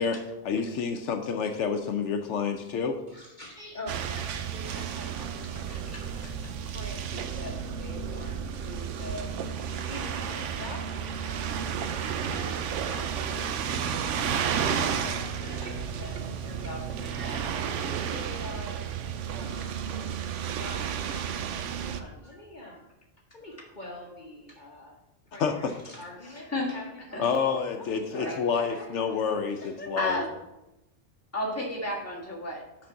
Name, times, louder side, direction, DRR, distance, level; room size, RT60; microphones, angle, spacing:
voice 1, 0.0-3.0 25.4-25.9 27.2-30.2, left 6 dB, 75° left, 6 dB, 0.9 m, -29 dB
voice 2, 3.1-9.3 9.9-18.8 19.3-20.0 20.4-22.9 23.3-25.0 25.3-27.5 27.8-29.2 29.6-29.9, left 1 dB, 40° left, -2 dB, 1.1 m, -45 dB
sound 1, 3.9-22.0, right 7 dB, 80° right, 0.9 m, -32 dB
voice 3, 5.7-6.3 26.2-26.7 27.1-27.2 28.1-28.4 30.0-30.3 31.3-32.9, left 1 dB, 10° left, -3 dB, 1.6 m, -33 dB
6.0 x 5.3 x 6.9 m, 0.95 s
omnidirectional pair, 1.3 m